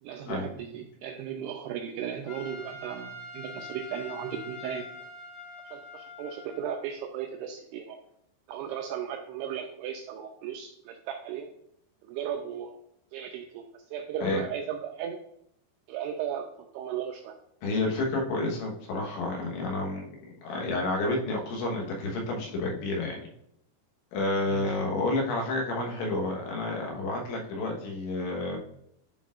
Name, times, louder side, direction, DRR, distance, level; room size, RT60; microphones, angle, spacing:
voice 1, 0.0-4.8 5.7-8.0 8.5-11.5 12.0-12.8 13.1-15.2 15.9-16.5 16.7-17.4 24.5-24.8, right 9 dB, 85° right, 3 dB, 2.3 m, -36 dB
Trumpet, 2.3-6.9, left 2 dB, 55° left, 2.5 m, -44 dB
voice 2, 17.6-20.1 20.4-23.2 24.1-28.6, left 2 dB, 85° left, -1 dB, 3.6 m, -30 dB
11.0 x 4.3 x 2.4 m, 0.75 s
omnidirectional pair, 5.2 m